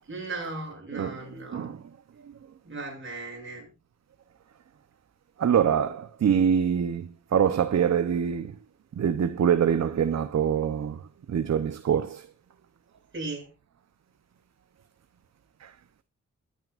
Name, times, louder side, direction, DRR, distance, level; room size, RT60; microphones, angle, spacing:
voice 1, 0.1-1.7 2.6-3.7 13.1-13.5, right 3 dB, 40° right, 7.7 m, -37 dB
voice 2, 0.9-1.9 2.2-2.3 5.4-8.6 9.0-11.0 11.3-12.3 15.6-15.7, right 8 dB, 60° right, 0.8 m, -25 dB
21.0 x 9.4 x 2.5 m
wide cardioid pair, 135°, 31 cm